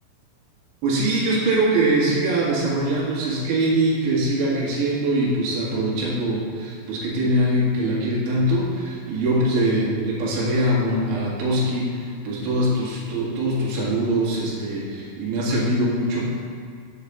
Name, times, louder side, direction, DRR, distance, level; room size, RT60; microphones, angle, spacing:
voice 1, 0.8-16.3, right 1 dB, 85° right, -5 dB, 4.1 m, -22 dB
8.5 x 4.9 x 7.0 m, 2.2 s
omnidirectional pair, 5.0 m